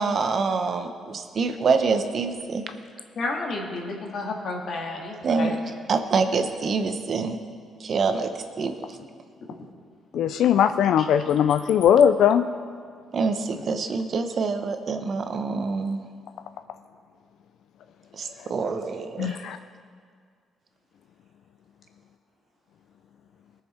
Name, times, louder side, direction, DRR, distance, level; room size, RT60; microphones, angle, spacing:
voice 1, 0.0-2.6 5.2-5.6 5.9-7.4 7.8-8.3 8.6-8.7 13.1-16.0 18.2-19.4, right 4 dB, 50° right, 7 dB, 0.8 m, -25 dB
voice 2, 3.2-5.5 18.6-18.7, left 3 dB, 60° left, 0 dB, 1.9 m, -31 dB
voice 3, 10.1-12.5 19.2-19.6, left 9 dB, 75° left, 10 dB, 0.3 m, -19 dB
18.5 x 6.8 x 4.4 m, 2.1 s
cardioid pair, 90°, 0 cm